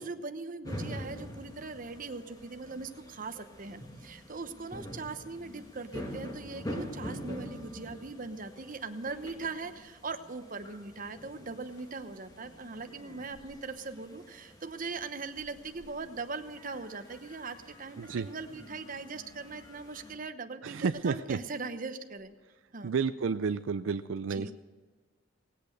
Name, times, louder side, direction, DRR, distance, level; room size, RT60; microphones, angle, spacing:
voice 1, 0.0-22.3 22.7-22.9 24.3-24.5, right 4 dB, 45° right, 8 dB, 1.0 m, -40 dB
sound 1, 0.6-20.2, equal, 20° left, 1.6 m, -46 dB
Respiratory sounds, 4.4-5.1 5.4-6.4 7.1-7.9 11.5-12.1 12.7-13.8 15.3-16.0 17.0-17.7 18.2-19.0 20.8-21.7 22.1-22.3, right 1 dB, 65° left, 4.5 m, -59 dB
voice 2, 18.0-18.3 20.6-21.4 22.8-24.5, right 5 dB, 85° right, 11 dB, 0.4 m, -31 dB
18.5 x 8.5 x 6.5 m, 1.4 s
head